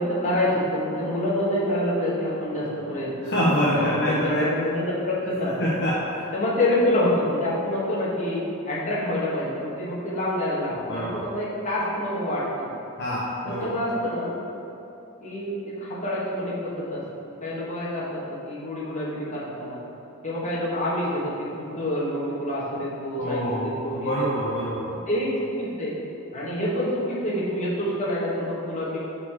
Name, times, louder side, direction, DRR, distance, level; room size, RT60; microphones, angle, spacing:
voice 1, 0.0-3.3 3.8-5.6 6.3-12.8 13.4-14.3 15.2-17.0 17.4-19.8 20.2-24.5 25.1-25.9 26.3-29.0, left 1 dB, 35° left, -8 dB, 1.5 m, -27 dB
voice 2, 3.2-4.5 5.6-6.3 10.9-11.3 13.0-13.8 23.2-24.9, equal, 55° left, -7 dB, 0.8 m, -26 dB
6.2 x 4.3 x 4.3 m, 2.9 s
head